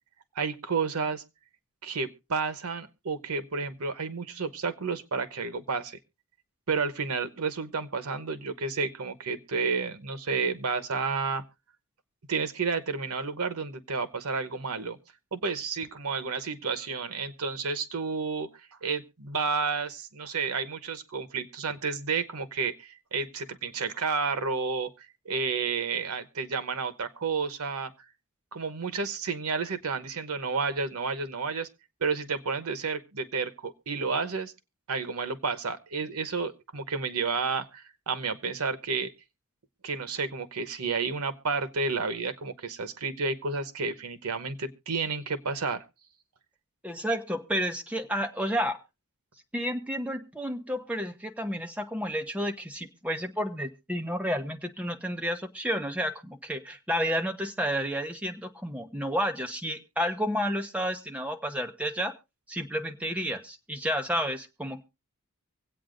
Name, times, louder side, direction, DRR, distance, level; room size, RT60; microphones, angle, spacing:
voice 1, 0.4-1.2 1.8-6.0 6.7-11.4 12.3-15.0 15.3-18.5 18.8-27.9 28.5-31.7 32.0-34.5 34.9-39.1 39.8-45.8, right 4 dB, 90° right, 1.0 m, -31 dB
voice 2, 46.8-48.8 49.5-62.1 62.5-64.8, equal, 5° right, 0.8 m, -31 dB
24.5 x 8.4 x 2.5 m
head